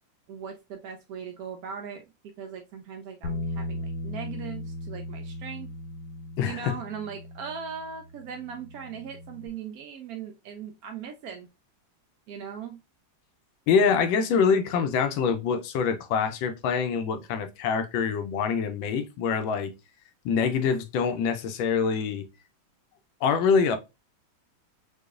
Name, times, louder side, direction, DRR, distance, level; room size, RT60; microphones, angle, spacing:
voice 1, 0.3-5.7 6.4-11.5 12.3-12.8, right 7 dB, 80° right, 0.8 m, -39 dB
Bass guitar, 3.2-9.5, left 2 dB, 65° left, 1.2 m, -37 dB
voice 2, 6.4-6.7 13.7-19.7 20.2-22.2 23.2-23.8, left 6 dB, 90° left, 1.4 m, -25 dB
4.9 x 2.3 x 2.3 m
omnidirectional pair, 2.1 m